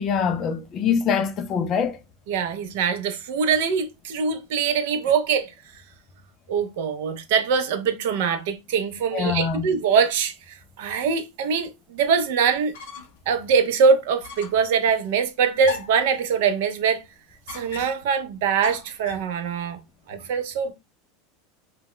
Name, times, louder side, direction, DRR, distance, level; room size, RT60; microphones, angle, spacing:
voice 1, 0.0-2.0 9.1-9.7, left 6 dB, 25° left, 0.3 m, -24 dB
voice 2, 2.3-5.5 6.5-12.7 13.3-17.0 17.5-19.8 20.1-20.7, right 6 dB, 65° right, 0.4 m, -23 dB
sound 1, 12.5-13.3 13.6-13.7 14.2-14.7 15.6-16.1 17.5-18.1 18.6-19.3, left 5 dB, 70° left, 0.6 m, -38 dB
2.1 x 2.0 x 3.7 m
supercardioid pair, 170°, 0 cm